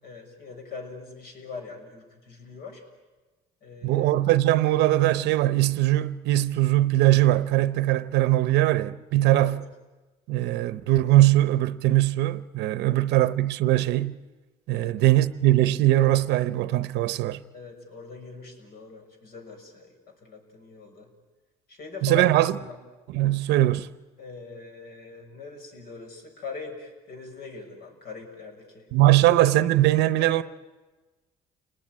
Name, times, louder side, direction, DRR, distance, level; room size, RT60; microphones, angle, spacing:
voice 1, 0.0-2.8 3.6-4.1 9.3-9.5 12.8-13.0 14.7-15.2 17.5-21.1 21.7-22.3 22.6-22.8 24.2-29.2 30.2-30.4, left 4 dB, 65° left, 6.8 m, -42 dB
voice 2, 3.8-9.6 10.3-14.2 14.7-17.4 22.0-22.5 23.1-23.9 28.9-30.4, right 15 dB, 85° right, 0.8 m, -21 dB
30.0 x 19.5 x 9.6 m
cardioid pair, 110°, 17 cm